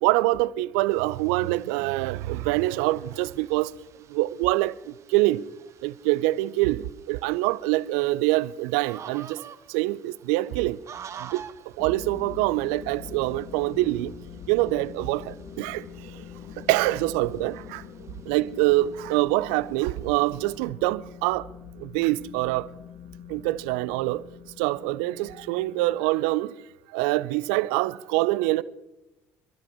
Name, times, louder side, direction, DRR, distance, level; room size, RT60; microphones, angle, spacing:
voice 1, 0.0-3.7 4.1-5.5 5.8-9.4 9.7-10.8 11.2-11.5 11.8-14.1 14.5-16.3 16.6-17.8 18.3-21.5 21.8-22.7 23.3-24.2 24.6-26.6 26.9-28.6, right 18 dB, 70° right, 0.4 m, -25 dB
sound 1, 0.9-20.7, right 8 dB, 45° right, 1.0 m, -50 dB
sound 2, 11.8-26.0, left 6 dB, 55° left, 1.3 m, -44 dB
26.5 x 12.5 x 3.6 m
hypercardioid pair, 60°, 7 cm